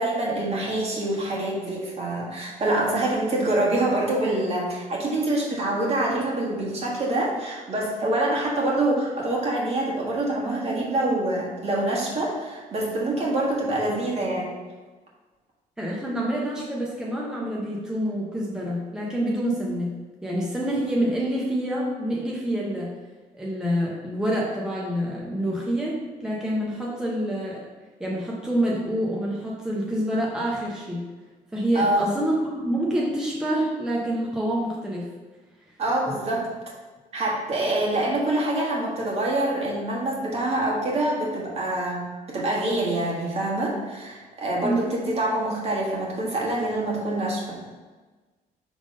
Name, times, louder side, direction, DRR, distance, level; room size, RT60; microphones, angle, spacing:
voice 1, 0.0-14.5 31.7-32.1 35.8-36.5 37.1-47.6, right 1 dB, 40° right, -3 dB, 1.7 m, -25 dB
voice 2, 15.8-22.9 23.4-27.6 28.0-31.0 31.5-35.1 44.6-45.0, right 1 dB, 5° right, -4 dB, 0.9 m, -27 dB
5.0 x 3.6 x 5.3 m, 1.3 s
cardioid pair, 120°, 16 cm